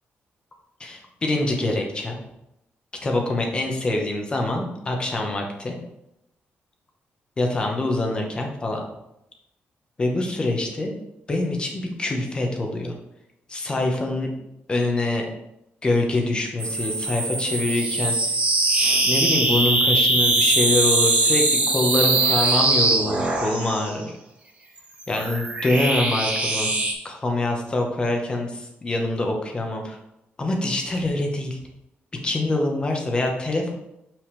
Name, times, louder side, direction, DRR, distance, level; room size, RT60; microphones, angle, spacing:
voice 1, 0.8-2.2 3.0-5.8 7.4-8.8 10.0-10.9 11.3-12.9 13.5-14.3 14.7-15.3 15.8-18.2 19.0-24.2 25.1-26.7 27.0-30.0 30.4-31.6 32.2-33.7, left 2 dB, 25° left, 2 dB, 1.1 m, -25 dB
sound 1, 16.6-23.9 24.8-26.9, right 2 dB, 30° right, 1.3 m, -21 dB
7.2 x 5.9 x 3.3 m, 0.85 s
wide cardioid pair, 175°, 4 cm